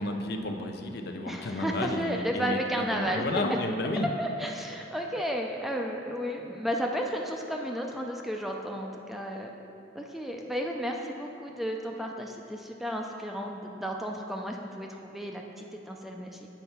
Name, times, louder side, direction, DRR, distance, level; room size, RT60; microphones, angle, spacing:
voice 1, 0.0-4.1, left 2 dB, 60° left, 4 dB, 0.6 m, -32 dB
voice 2, 1.3-3.2 4.2-9.6 10.0-16.5, equal, ahead, 1 dB, 0.4 m, -33 dB
8.4 x 4.5 x 5.6 m, 2.7 s
head